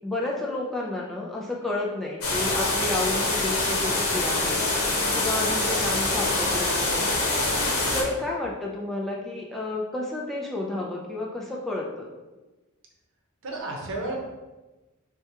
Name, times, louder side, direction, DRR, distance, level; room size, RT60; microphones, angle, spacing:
voice 1, 0.0-4.7 5.1-7.5 7.9-12.1, left 2 dB, ahead, -4 dB, 0.3 m, -31 dB
sound 1, 2.2-8.0, left 2 dB, 85° left, 0.9 m, -25 dB
voice 2, 13.4-14.1, right 2 dB, 60° right, -1 dB, 0.8 m, -33 dB
4.5 x 2.3 x 2.7 m, 1.1 s
head